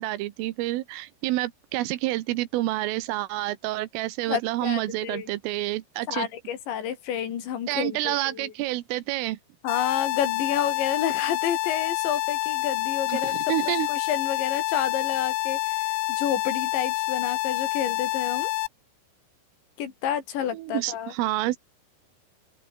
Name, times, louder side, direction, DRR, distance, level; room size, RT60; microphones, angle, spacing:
voice 1, 0.0-6.3 7.7-9.4 13.1-13.9 20.5-21.6, right 17 dB, 85° right, 3.7 m, -28 dB
voice 2, 4.3-5.3 6.1-8.5 9.6-13.3 13.9-18.5 19.8-21.1, left 9 dB, 65° left, 4.8 m, -30 dB
sound 1, 9.7-18.7, left 23 dB, 90° left, 3.3 m, -27 dB
open air
omnidirectional pair, 5.7 m